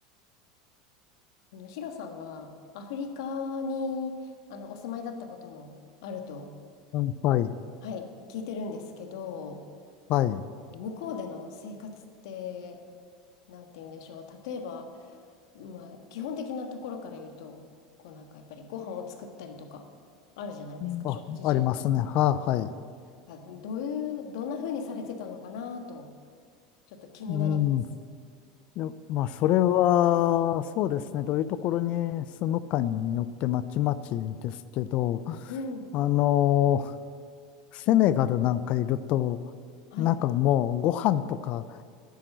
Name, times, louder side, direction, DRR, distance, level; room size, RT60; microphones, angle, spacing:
voice 1, 1.5-5.7 6.0-6.5 7.8-9.6 10.7-12.8 13.5-15.2 15.5-17.6 18.0-19.9 20.4-21.7 23.3-26.1 26.9-27.6 35.5-35.9 39.9-40.1, left 5 dB, 75° left, 5 dB, 1.5 m, -37 dB
voice 2, 6.9-7.5 10.1-10.4 20.8-22.7 27.3-27.8 28.8-35.5 35.9-36.9 37.7-39.4 40.0-41.6, left 12 dB, 55° left, 15 dB, 0.5 m, -25 dB
10.5 x 7.6 x 8.0 m, 2.1 s
hypercardioid pair, 100°, 3 cm